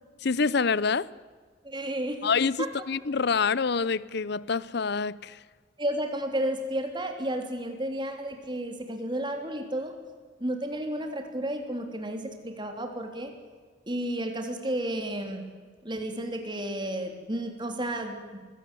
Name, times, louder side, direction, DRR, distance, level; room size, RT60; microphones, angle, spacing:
voice 1, 0.2-1.1 2.2-5.4, left 5 dB, 60° left, 0.7 m, -26 dB
voice 2, 1.6-2.3 2.6-2.7 5.8-9.9 10.4-13.3 13.9-15.4 15.8-18.4, right 1 dB, 25° right, 3.3 m, -32 dB
24.0 x 16.5 x 9.8 m
head